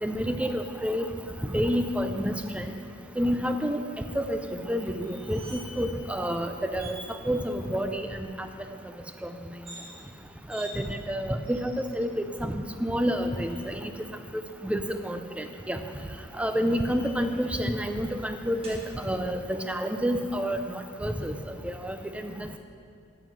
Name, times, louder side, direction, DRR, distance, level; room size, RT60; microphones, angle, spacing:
voice 1, 0.0-1.1 1.4-2.7 3.2-3.8 4.1-4.4 4.7-7.0 7.3-8.1 9.2-9.3 10.5-13.9 14.6-15.8 16.4-22.6, equal, 5° right, 7 dB, 0.5 m, -29 dB
sound 1, 5.0-5.9 6.2-6.3 6.7-7.0 9.5-9.9 10.5-10.7 11.4-12.0 13.0-13.8 15.7-17.3 18.6-18.8, right 1 dB, 30° right, 2.1 m, -47 dB
9.2 x 7.8 x 6.2 m, 2.3 s
head